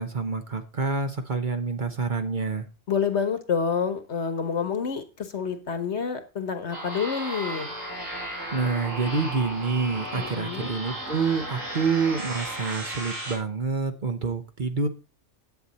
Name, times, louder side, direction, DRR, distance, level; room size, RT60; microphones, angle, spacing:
voice 1, 0.0-2.7 8.5-14.9, right 4 dB, 40° right, 7 dB, 1.0 m, -27 dB
voice 2, 2.9-7.7 10.1-10.7, left 6 dB, 60° left, 9 dB, 1.4 m, -28 dB
sound 1, 6.7-13.4, right 1 dB, 90° right, 3.7 m, -34 dB
10.5 x 8.0 x 4.1 m, 0.31 s
omnidirectional pair, 1.3 m